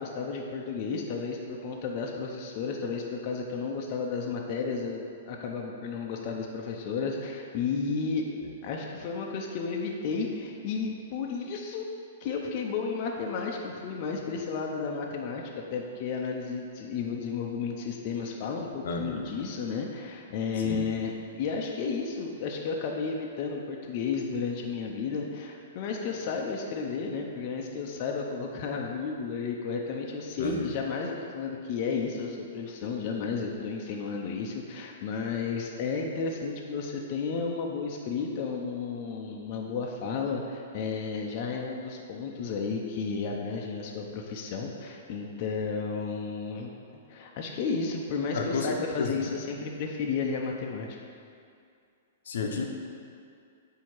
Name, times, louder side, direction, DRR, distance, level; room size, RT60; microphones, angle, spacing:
voice 1, 0.0-8.2 8.6-11.9 12.2-21.1 21.4-46.7 47.1-50.9, left 5 dB, 40° left, 0 dB, 0.6 m, -32 dB
voice 2, 18.8-19.4 20.6-20.8 30.4-30.7 48.3-48.7 49.0-49.1 52.3-52.7, left 4 dB, 75° left, 2 dB, 0.7 m, -32 dB
8.3 x 2.8 x 4.6 m, 2.4 s
hypercardioid pair, 150°, 0 cm